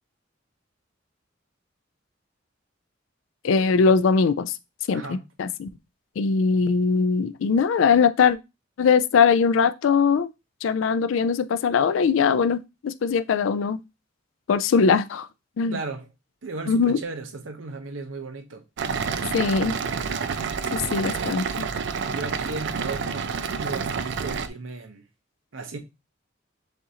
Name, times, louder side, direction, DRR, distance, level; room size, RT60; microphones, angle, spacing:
voice 1, 3.4-4.5 4.9-5.7 6.2-8.4 8.8-10.3 10.6-13.8 14.5-15.3 15.6-15.8 16.7-17.0 19.3-19.8 20.7-21.4, left 5 dB, 80° left, 0.4 m, -21 dB
voice 2, 15.7-16.1 16.4-18.6 20.8-21.4 22.1-25.0 25.5-25.8, right 3 dB, 80° right, 0.8 m, -35 dB
sound 1, 18.8-24.5, right 5 dB, 65° right, 0.4 m, -29 dB
6.6 x 2.5 x 2.8 m
head